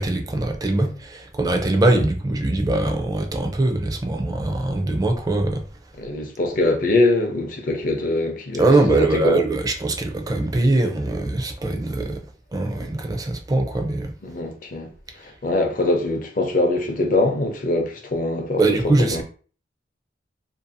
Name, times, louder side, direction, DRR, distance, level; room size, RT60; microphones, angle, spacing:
voice 1, 0.0-5.6 8.6-12.2 12.5-14.1 18.6-19.2, right 2 dB, 20° right, 0.4 m, -22 dB
voice 2, 6.0-9.4 14.2-14.9 15.2-19.2, left 2 dB, 50° left, 0.5 m, -23 dB
2.6 x 2.3 x 2.6 m
head